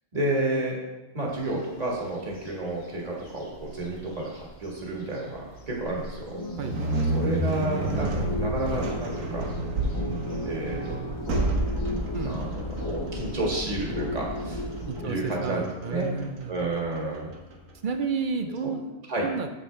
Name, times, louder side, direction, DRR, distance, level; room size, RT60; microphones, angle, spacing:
voice 1, 0.1-0.8 1.1-6.4 7.1-9.5 10.4-11.0 12.2-12.5 12.8-14.6 15.0-16.1 16.5-17.3 18.6-18.7 19.1-19.3, right 2 dB, 30° right, -2 dB, 1.6 m, -30 dB
sound 1, 1.3-14.9, equal, 55° left, 1.7 m, -40 dB
sound 2, 6.3-15.6, left 2 dB, 20° left, 0.8 m, -37 dB
sound 3, 6.6-17.7, right 2 dB, 90° right, 1.4 m, -31 dB
voice 2, 12.1-12.6 14.9-16.6 17.8-19.5, right 5 dB, 60° right, 7 dB, 0.5 m, -32 dB
8.3 x 7.2 x 3.3 m, 1.1 s
omnidirectional pair, 1.3 m